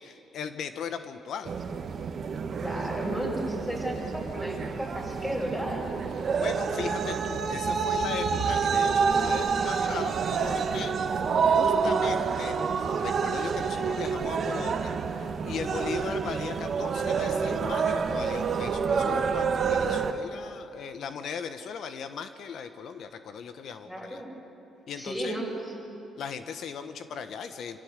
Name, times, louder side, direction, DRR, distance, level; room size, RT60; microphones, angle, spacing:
voice 1, 0.0-1.5 6.4-10.9 11.4-12.6 13.0-24.2 24.9-25.4 26.2-27.8, left 6 dB, 70° left, 9 dB, 1.1 m, -38 dB
sound 1, 1.4-20.1, right 5 dB, 50° right, 1.4 m, -28 dB
voice 2, 2.6-5.9 23.8-24.3 25.0-25.7, equal, 10° left, -2 dB, 6.7 m, -33 dB
25.5 x 15.5 x 8.2 m, 2.8 s
cardioid pair, 90°, 0 cm